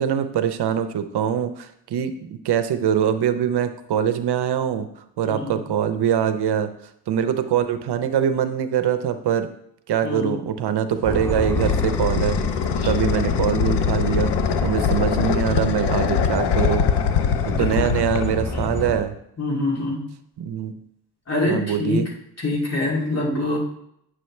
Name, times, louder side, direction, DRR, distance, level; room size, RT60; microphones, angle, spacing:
voice 1, 0.0-4.9 5.2-6.7 7.1-9.5 9.9-12.4 12.8-14.3 14.6-16.9 17.6-19.1 20.4-20.7 21.5-22.1, right 9 dB, 70° right, 10 dB, 0.7 m, -23 dB
voice 2, 5.2-5.6 10.0-10.4 12.8-12.9 17.5-17.7 19.4-20.0 21.3-22.0 22.4-23.6, left 2 dB, 40° left, -4 dB, 2.7 m, -25 dB
sound 1, 10.9-18.9, left 7 dB, 75° left, 0.7 m, -23 dB
sound 2, 11.0-19.0, left 2 dB, 5° left, 0.4 m, -28 dB
9.1 x 6.3 x 3.2 m, 0.74 s
cardioid pair, 115°, 41 cm